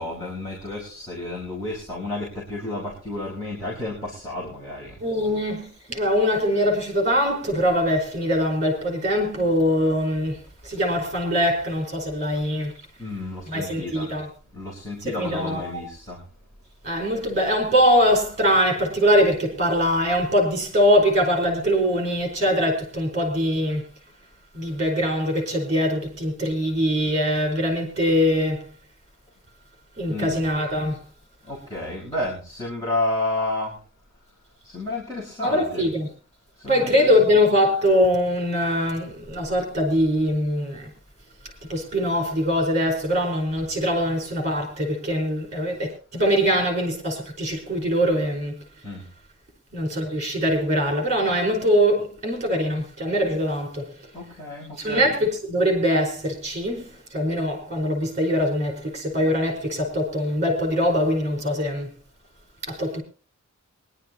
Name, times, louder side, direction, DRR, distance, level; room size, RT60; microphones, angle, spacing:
voice 1, 0.0-4.9 13.0-14.1 14.5-16.2 30.1-30.4 31.5-33.7 34.7-35.9 36.6-37.1 48.8-49.0 54.1-55.1, left 2 dB, 15° left, 4.6 m, -31 dB
voice 2, 5.0-10.4 10.6-12.7 13.5-14.3 15.2-15.8 16.8-23.8 24.5-28.6 30.0-31.0 35.4-36.1 36.7-40.9 41.7-48.6 49.7-53.9 54.8-61.9 62.6-63.0, equal, 35° right, 4.9 m, -22 dB
23.5 x 11.0 x 3.0 m
head